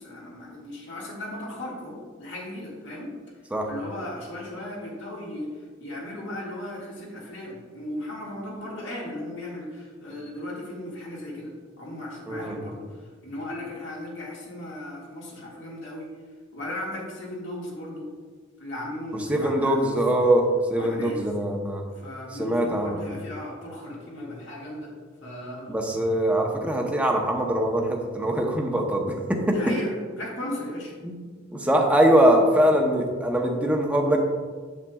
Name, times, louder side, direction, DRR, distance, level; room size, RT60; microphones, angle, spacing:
voice 1, 0.0-3.1 3.7-5.5 5.8-11.5 11.8-12.8 13.2-16.1 16.5-18.1 18.6-20.0 20.8-21.3 22.0-24.9 25.2-25.7 29.5-30.9, left 1 dB, 65° left, -3 dB, 1.9 m, -36 dB
voice 2, 12.3-12.6 19.1-21.8 22.4-23.0 25.7-29.7 31.0-31.1 31.5-34.3, right 1 dB, 5° right, 1 dB, 0.8 m, -22 dB
8.6 x 8.1 x 2.3 m, 1.5 s
head